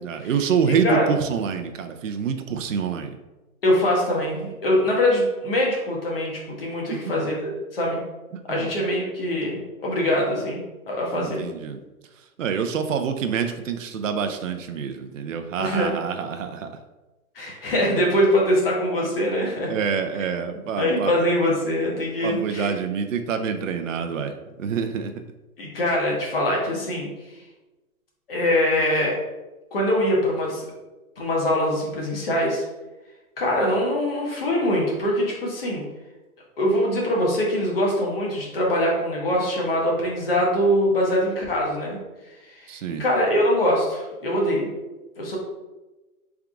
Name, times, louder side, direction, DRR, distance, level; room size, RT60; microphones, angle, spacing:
voice 1, 0.0-3.2 6.9-7.3 8.3-8.8 11.1-11.8 12.2-16.8 17.5-17.6 19.7-21.2 22.2-25.1 42.7-43.0, right 6 dB, 60° right, 6 dB, 0.5 m, -27 dB
voice 2, 0.6-1.0 3.6-6.3 6.6-7.4 7.7-8.0 8.5-10.6 10.9-11.4 15.6-15.9 17.3-19.7 20.8-22.7 25.6-27.1 28.3-29.2 29.7-30.6 31.2-32.6 33.4-35.8 36.6-42.0 42.5-44.7 45.2-45.4, left 1 dB, 40° left, -2 dB, 1.2 m, -23 dB
3.6 x 3.5 x 3.6 m, 1.1 s
hypercardioid pair, 175°, 44 cm